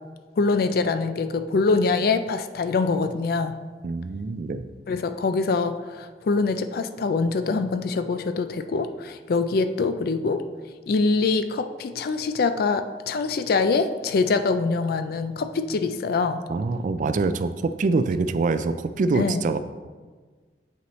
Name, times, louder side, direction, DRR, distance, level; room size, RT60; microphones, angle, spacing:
voice 1, 0.4-3.6 4.9-10.5 10.9-16.4 19.2-19.4, left 4 dB, 55° left, 10 dB, 0.4 m, -24 dB
voice 2, 3.8-4.7 16.5-19.6, right 3 dB, 45° right, 11 dB, 0.3 m, -25 dB
7.5 x 5.5 x 3.1 m, 1.4 s
head